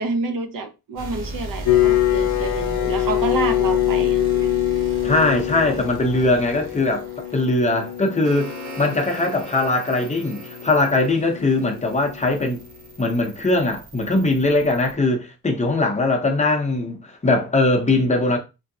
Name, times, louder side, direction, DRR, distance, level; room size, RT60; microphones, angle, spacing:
voice 1, 0.0-4.5, right 4 dB, 60° right, 0.6 m, -28 dB
sound 1, 1.0-14.9, right 1 dB, 90° right, 1.1 m, -37 dB
sound 2, 1.6-12.7, left 14 dB, 70° left, 0.5 m, -25 dB
voice 2, 5.0-12.6 13.0-18.4, left 2 dB, 20° left, 0.6 m, -21 dB
sound 3, 7.8-12.9, right 1 dB, 40° right, 1.0 m, -41 dB
3.0 x 2.6 x 2.7 m
wide cardioid pair, 165°, 37 cm